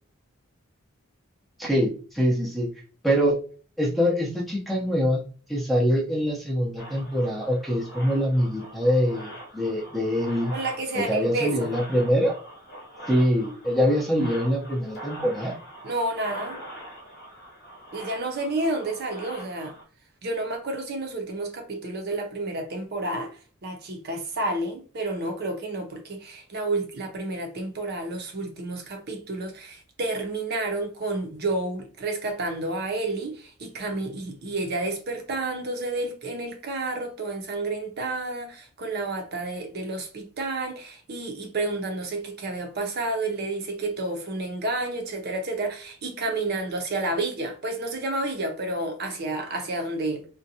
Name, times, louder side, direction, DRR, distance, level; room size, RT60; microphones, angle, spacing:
voice 1, 1.6-2.7 3.0-3.4 3.8-5.2 5.5-10.5 10.9-12.3 13.1-15.5, equal, ahead, 0.5 m, -24 dB
sound 1, 6.8-19.8, right 1 dB, 45° left, 0.9 m, -43 dB
voice 2, 10.5-11.7 15.8-16.6 17.9-19.7 20.2-50.3, right 2 dB, 50° right, 0.6 m, -30 dB
2.6 x 2.2 x 2.6 m
head